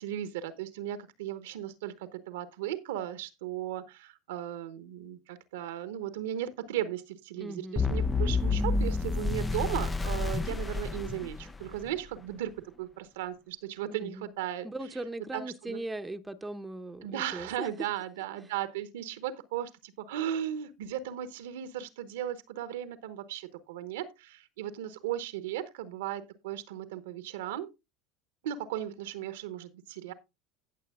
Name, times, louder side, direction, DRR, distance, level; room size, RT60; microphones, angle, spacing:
voice 1, 0.0-14.7 15.3-15.8 17.0-27.7 28.4-30.1, right 11 dB, 75° right, 1.0 m, -36 dB
voice 2, 7.4-8.1 14.0-14.3 14.6-17.7, right 2 dB, 10° right, 0.9 m, -39 dB
sound 1, 7.8-11.9, left 3 dB, 20° left, 0.5 m, -29 dB
17.0 x 6.7 x 2.4 m
hypercardioid pair, 80°, 0 cm